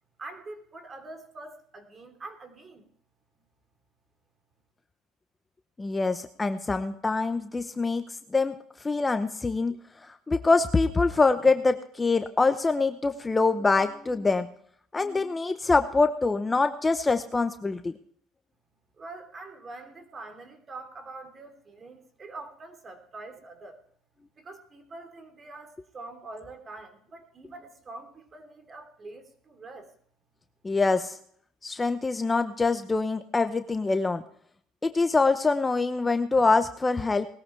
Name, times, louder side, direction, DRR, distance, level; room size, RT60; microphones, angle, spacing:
voice 1, 0.2-2.9 19.0-23.8 24.4-29.9, right 2 dB, 30° right, 5 dB, 3.4 m, -44 dB
voice 2, 5.8-8.0 8.3-8.5 8.8-9.8 10.3-14.5 14.9-17.9 30.6-31.2 31.6-34.2 34.8-37.3, left 3 dB, 20° left, 9 dB, 0.8 m, -24 dB
19.5 x 13.5 x 3.3 m, 0.62 s
supercardioid pair, 100°, 0 cm